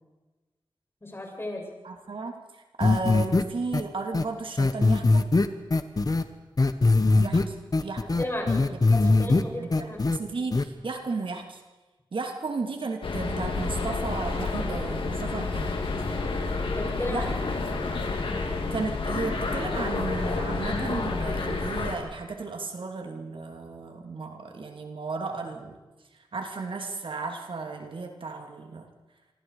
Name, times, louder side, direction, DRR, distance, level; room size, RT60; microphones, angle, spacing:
voice 1, 1.0-1.7 8.2-10.2 16.7-17.3, left 1 dB, 25° left, 0 dB, 7.9 m, -34 dB
voice 2, 1.8-2.4 2.8-5.3 7.1-7.5 7.8-8.0 8.7-8.8 9.6-11.6 12.1-15.8 17.1-17.3 17.7-17.8 18.7-25.8 26.3-28.9, right 4 dB, 75° right, 4 dB, 3.0 m, -34 dB
sound 1, 2.8-3.4 3.7-3.8 4.1-4.2 4.6-6.2 6.6-7.4 7.7-9.4 9.7-10.2 10.5-10.6, left 3 dB, 45° left, 1.4 m, -21 dB
sound 2, 13.0-22.0, left 3 dB, 85° left, 3.4 m, -29 dB
26.5 x 25.5 x 5.0 m, 1.2 s
wide cardioid pair, 70°, 9 cm